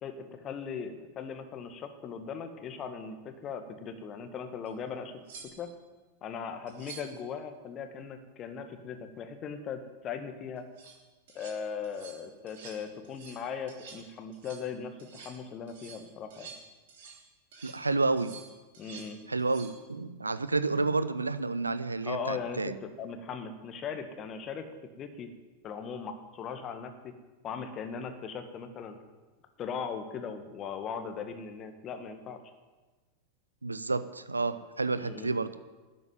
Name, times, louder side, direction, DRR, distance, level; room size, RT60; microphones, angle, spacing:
voice 1, 0.0-5.1 5.6-5.7 6.2-10.7 11.3-16.5 18.8-19.2 22.0-24.6 25.0-25.3 25.6-27.1 27.4-29.0 29.6-32.4 34.9-35.3, left 6 dB, 30° left, 7 dB, 1.7 m, -39 dB
sound 1, 4.7-4.8 5.2-5.8 6.7-7.2 10.6-11.0 11.3-11.6 11.8-12.2 12.5-12.8 13.0-13.4 13.7-14.1 14.3-14.7 15.0-15.4 15.7-17.3 17.5-17.8 18.2-19.1 19.4-19.8 22.3-22.5, right 6 dB, 55° right, 3.3 m, -49 dB
voice 2, 17.6-18.3 19.3-22.8 33.6-35.6, right 3 dB, 80° right, 14 dB, 0.6 m, -30 dB
12.5 x 8.5 x 9.3 m, 1.3 s
figure-of-eight pair, 90°, 0 cm